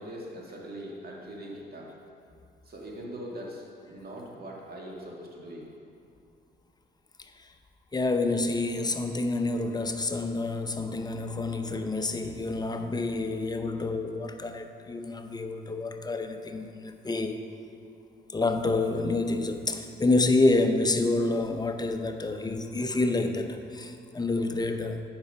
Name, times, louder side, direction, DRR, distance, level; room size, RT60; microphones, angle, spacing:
voice 1, 0.0-1.9 2.7-5.7, right 1 dB, 50° right, -2 dB, 1.9 m, -41 dB
voice 2, 7.9-17.4 18.3-25.0, left 2 dB, 20° left, 6 dB, 0.6 m, -28 dB
8.8 x 5.4 x 5.6 m, 2.5 s
cardioid pair, 90°, 20 cm